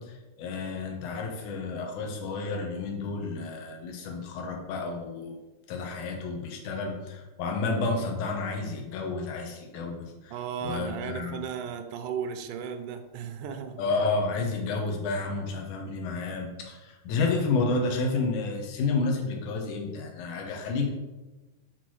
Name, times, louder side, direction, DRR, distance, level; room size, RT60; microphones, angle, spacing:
voice 1, 0.0-5.4 5.7-10.3 10.6-11.4 13.8-20.9, left 3 dB, 75° left, 1 dB, 2.6 m, -30 dB
voice 2, 10.3-13.8, right 7 dB, 85° right, 8 dB, 2.2 m, -35 dB
6.7 x 4.2 x 6.2 m, 1.1 s
omnidirectional pair, 3.6 m